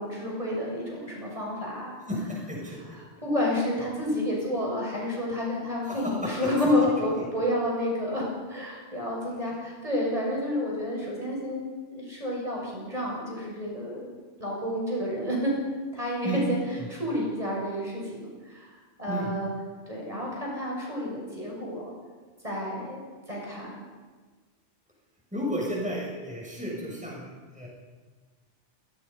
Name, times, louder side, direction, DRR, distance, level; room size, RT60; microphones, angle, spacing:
voice 1, 0.0-1.9 2.9-15.5 15.9-16.6 16.9-18.7 19.0-19.5 19.9-21.9 22.4-23.7, left 1 dB, 30° right, -3 dB, 6.8 m, -30 dB
voice 2, 2.1-2.8 5.9-6.3 16.2-16.4 19.1-19.3 25.3-27.7, right 1 dB, 5° right, -4 dB, 6.9 m, -33 dB
27.5 x 20.0 x 5.6 m, 1.4 s
omnidirectional pair, 1.3 m